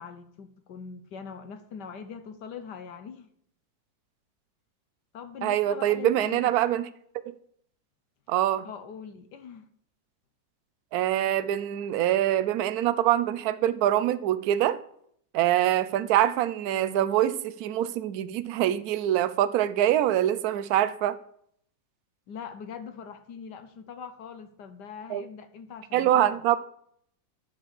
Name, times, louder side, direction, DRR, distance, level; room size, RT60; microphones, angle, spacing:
voice 1, 0.0-3.3 5.1-6.5 8.6-9.6 22.3-26.4, left 6 dB, 65° left, 1.4 m, -42 dB
voice 2, 5.4-6.9 7.2-7.3 8.3-8.7 10.9-14.8 15.3-21.2 25.1-25.2 25.9-26.6, right 12 dB, 65° right, 1.0 m, -24 dB
11.0 x 4.9 x 7.4 m
omnidirectional pair, 2.1 m